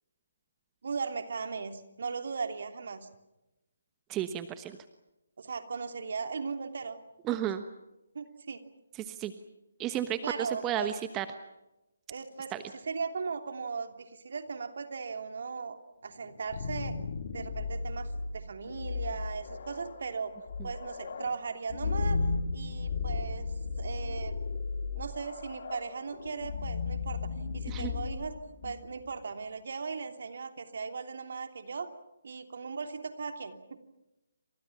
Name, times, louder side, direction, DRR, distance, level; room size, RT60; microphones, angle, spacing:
voice 1, 0.8-3.1 5.4-7.0 7.3-7.4 8.1-8.6 10.2-10.9 12.1-15.8 16.0-16.9 17.3-20.3 20.6-22.2 22.5-24.4 24.9-28.4 28.6-31.9 32.2-33.8, right 5 dB, 55° right, 7 dB, 2.9 m, -38 dB
voice 2, 4.1-4.8 7.2-7.6 9.0-9.3 9.8-11.3 12.5-12.6 27.7-27.9, right 11 dB, 15° right, 10 dB, 1.2 m, -33 dB
sound 1, 16.2-29.1, left 4 dB, 50° left, 3.7 m, -35 dB
29.0 x 26.5 x 5.9 m, 0.96 s
figure-of-eight pair, 145°, 0 cm